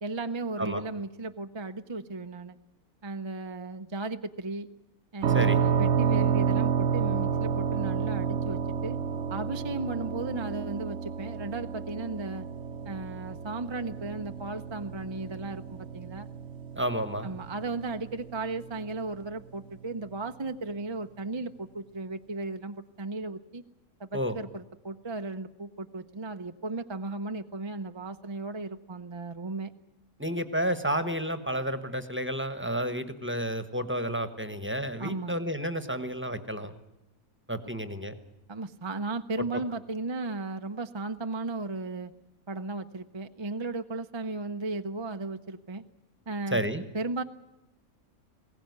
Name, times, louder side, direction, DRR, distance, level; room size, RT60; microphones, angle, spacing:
voice 1, 0.0-2.6 3.0-4.7 5.1-9.0 9.3-12.4 12.8-16.3 17.2-23.6 24.0-29.7 35.0-35.4 38.5-42.1 42.5-45.8 46.3-46.6 46.9-47.2, right 3 dB, 30° right, 8 dB, 0.6 m, -35 dB
sound 1, 5.2-18.9, right 7 dB, 55° right, 1.2 m, -30 dB
voice 2, 16.8-17.3 24.1-24.4 30.2-36.7 37.5-38.1 39.4-39.6 46.5-46.8, equal, 10° right, 10 dB, 1.2 m, -31 dB
21.0 x 17.5 x 9.5 m, 0.95 s
omnidirectional pair, 1.5 m